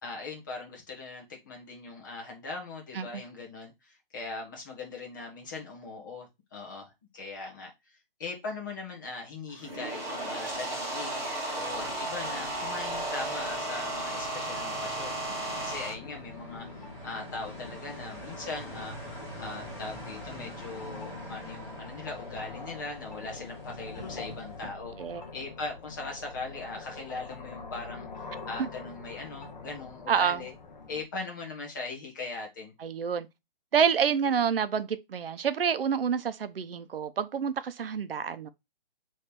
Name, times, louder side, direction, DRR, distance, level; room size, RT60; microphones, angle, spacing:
voice 1, 0.0-15.2 15.5-18.9 19.4-24.9 25.3-30.5 30.9-32.7, left 3 dB, 20° left, 1.0 m, -40 dB
sound 1, 9.5-15.9, right 1 dB, 25° right, 1.6 m, -34 dB
sound 2, 11.4-24.7, right 1 dB, 5° right, 1.9 m, -46 dB
sound 3, 11.7-31.0, left 4 dB, 50° left, 1.0 m, -45 dB
voice 2, 30.1-30.4 32.8-33.3 33.7-38.5, right 7 dB, 75° right, 0.7 m, -28 dB
3.4 x 3.2 x 4.3 m
hypercardioid pair, 180°, 29 cm